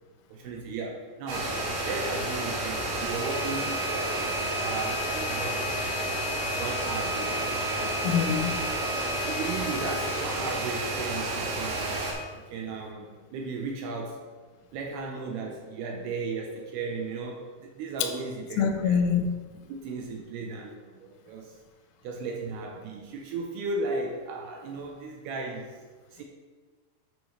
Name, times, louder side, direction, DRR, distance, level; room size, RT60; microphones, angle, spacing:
voice 1, 0.3-1.6 1.8-6.0 6.6-8.0 9.3-12.0 12.3-14.2 14.7-19.0 19.7-21.6 22.0-25.8 26.1-26.2, right 3 dB, 90° right, 1 dB, 2.3 m, -36 dB
sound 1, 1.3-12.1, right 1 dB, 65° right, 3.0 m, -30 dB
voice 2, 8.0-8.7 18.0-18.1 18.6-19.4, left 7 dB, 85° left, 6 dB, 3.1 m, -25 dB
8.6 x 7.1 x 3.1 m, 1.4 s
omnidirectional pair, 5.4 m